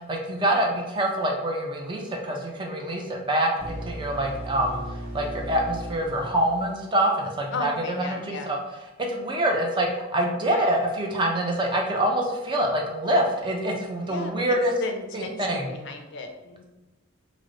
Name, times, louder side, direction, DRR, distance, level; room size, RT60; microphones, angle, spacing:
voice 1, 0.0-4.8 5.1-7.7 8.0-8.6 9.0-14.7 15.1-15.7, right 1 dB, 25° right, 1 dB, 0.4 m, -25 dB
sound 1, 3.6-7.5, right 1 dB, 75° right, 1.1 m, -37 dB
voice 2, 7.5-8.5 10.5-10.7 14.0-16.6, left 3 dB, 60° left, 5 dB, 0.4 m, -35 dB
3.1 x 2.0 x 3.7 m, 1.1 s
head